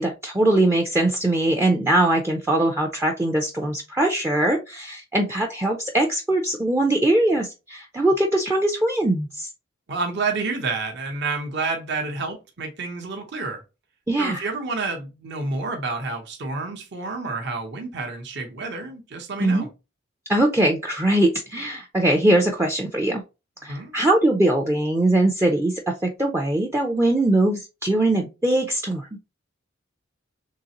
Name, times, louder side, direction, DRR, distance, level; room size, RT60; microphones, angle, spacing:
voice 1, 0.0-9.5 14.1-14.5 19.4-19.7 20.3-23.2 23.6-29.1, right 1 dB, 15° right, 0.4 m, -21 dB
voice 2, 9.9-13.6 14.2-19.7 23.6-23.9, right 3 dB, 60° right, 0.9 m, -29 dB
3.8 x 3.2 x 2.9 m
head